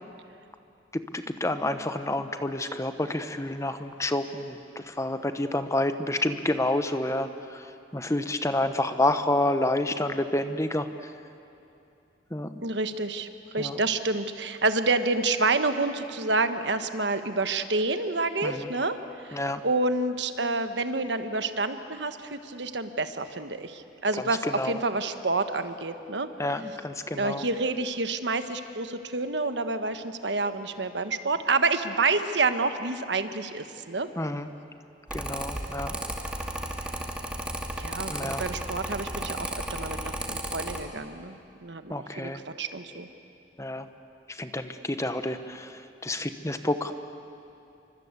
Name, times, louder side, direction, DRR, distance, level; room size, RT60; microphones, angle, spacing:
voice 1, 0.9-11.1 12.3-12.6 13.6-13.8 18.4-18.7 19.3-19.6 24.2-24.3 24.5-24.8 26.4-27.4 34.2-34.5 35.1-36.0 38.1-38.4 41.9-42.4 43.6-43.9 44.3-46.9, left 1 dB, 15° left, 9 dB, 1.0 m, -29 dB
voice 2, 12.6-26.3 27.1-34.1 37.8-42.3 42.6-43.1, right 3 dB, 70° right, 9 dB, 1.3 m, -28 dB
Mechanical fan, 35.1-40.8, right 1 dB, 5° right, 2.2 m, -34 dB
29.0 x 24.5 x 8.3 m, 2.7 s
head